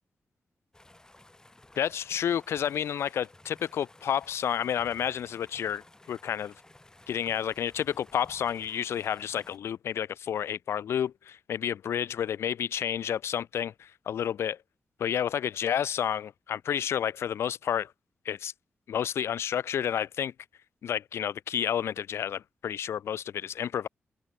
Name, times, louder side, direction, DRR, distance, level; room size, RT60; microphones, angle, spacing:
sound 1, 0.7-9.6, left 2 dB, 15° left, 7.4 m, -56 dB
voice 1, 1.8-5.8 6.1-6.5 7.1-14.6 15.0-17.9 18.2-18.5 18.9-20.3 20.8-23.9, left 9 dB, 90° left, 0.7 m, -30 dB
open air
cardioid pair, 95°, 4 cm